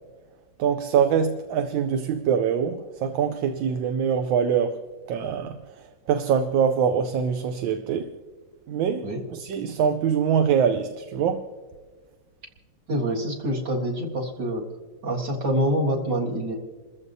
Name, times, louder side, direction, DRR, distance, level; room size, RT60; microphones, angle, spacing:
voice 1, 0.6-4.8 5.1-5.6 6.1-8.1 8.7-9.0 9.3-11.5, right 7 dB, 85° right, 1.4 m, -23 dB
voice 2, 12.9-14.6 15.0-16.5, right 1 dB, 65° right, 2.6 m, -26 dB
29.5 x 14.5 x 2.7 m
omnidirectional pair, 2.1 m